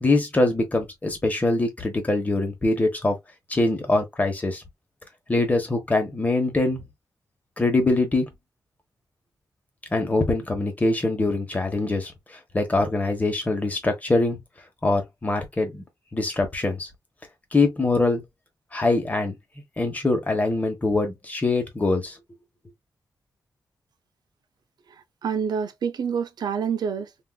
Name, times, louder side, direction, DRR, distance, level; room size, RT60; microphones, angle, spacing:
voice 1, 0.0-3.2 3.5-4.6 5.3-6.8 7.6-8.3 9.9-14.4 14.8-15.8 16.1-16.9 17.5-18.2 18.7-19.4 19.8-22.2, left 2 dB, 20° left, 1.0 m, -23 dB
voice 2, 25.2-27.2, right 7 dB, 80° right, 0.5 m, -27 dB
3.6 x 2.5 x 2.2 m
wide cardioid pair, 165°, 7 cm